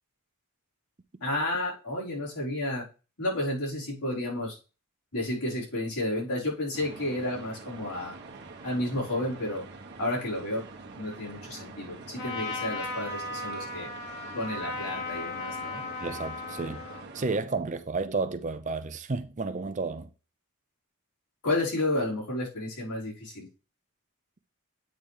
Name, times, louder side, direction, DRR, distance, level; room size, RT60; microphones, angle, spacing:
voice 1, 1.2-2.8 3.2-4.6 5.1-8.1 8.6-9.6 10.0-10.6 11.0-13.9 14.3-15.8 21.4-23.5, left 1 dB, 90° left, 4.2 m, -31 dB
sound 1, 6.7-17.4, right 3 dB, 50° right, 1.1 m, -45 dB
Trumpet, 12.1-17.1, left 3 dB, 50° left, 1.5 m, -36 dB
voice 2, 16.0-16.8 17.1-20.1, right 3 dB, 35° right, 0.5 m, -31 dB
8.5 x 3.2 x 5.5 m
head